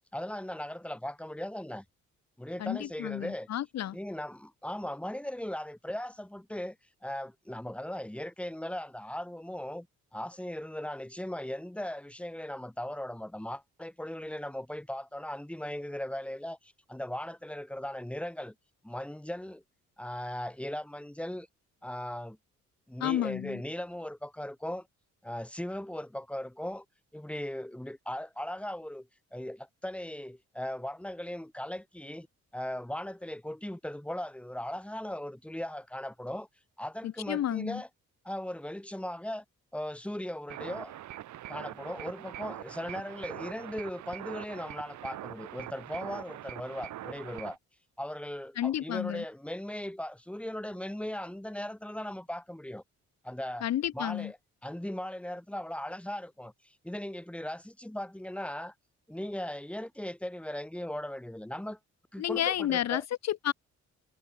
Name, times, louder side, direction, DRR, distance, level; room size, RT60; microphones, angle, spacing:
voice 1, 0.1-1.8 2.4-3.5 3.9-6.8 7.0-9.9 10.1-18.5 18.8-19.6 20.0-21.5 21.8-22.4 22.9-24.9 25.2-26.8 27.1-32.3 32.5-36.5 36.8-37.9 38.2-39.4 39.7-41.0 41.5-47.6 48.0-52.8 53.2-53.6 53.9-54.4 54.6-58.7 59.1-61.8 62.1-63.0, left 1 dB, 5° left, 3.2 m, -38 dB
voice 2, 2.6-4.0 23.0-23.6 37.0-37.8 48.6-49.2 53.6-54.3 62.2-63.5, left 12 dB, 60° left, 0.9 m, -31 dB
sound 1, 40.5-47.6, right 13 dB, 70° right, 1.1 m, -43 dB
cardioid pair, 90°, 30 cm